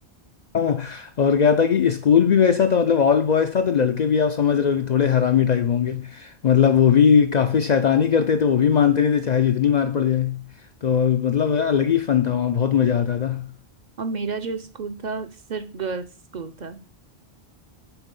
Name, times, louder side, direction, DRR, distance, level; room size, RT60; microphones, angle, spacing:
voice 1, 0.5-10.4 10.8-13.5, left 7 dB, 55° left, 0.5 m, -19 dB
voice 2, 14.0-16.1 16.3-16.8, right 4 dB, 50° right, 0.7 m, -31 dB
7.1 x 4.1 x 5.3 m
omnidirectional pair, 1.1 m